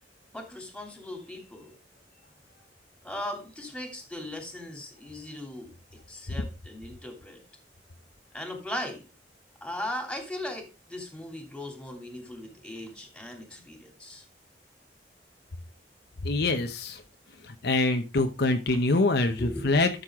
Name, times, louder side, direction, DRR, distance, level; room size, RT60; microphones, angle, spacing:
voice 1, 0.3-1.8 3.0-5.7 6.1-7.4 8.3-9.0 9.6-14.2 18.7-18.8 19.4-19.8, left 1 dB, 5° left, 3 dB, 2.9 m, -38 dB
voice 2, 16.2-17.0 17.5-19.9, left 2 dB, 65° left, 6 dB, 0.9 m, -25 dB
12.0 x 6.7 x 3.7 m, 0.28 s
head